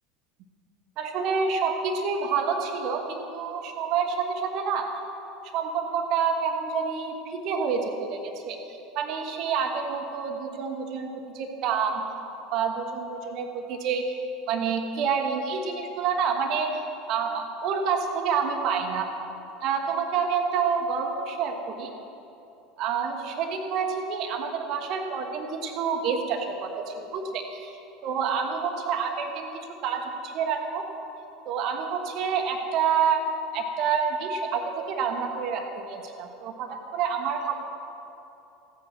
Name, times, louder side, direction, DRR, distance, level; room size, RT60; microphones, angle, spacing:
voice 1, 1.0-4.9 5.5-11.1 11.3-12.0 12.5-14.1 14.5-16.8 17.1-19.1 19.6-21.9 22.8-27.7 28.0-30.8 31.4-33.3 33.5-37.6, right 6 dB, 50° right, 4 dB, 1.4 m, -28 dB
15.0 x 9.0 x 6.1 m, 2.9 s
figure-of-eight pair, 70°, 0 cm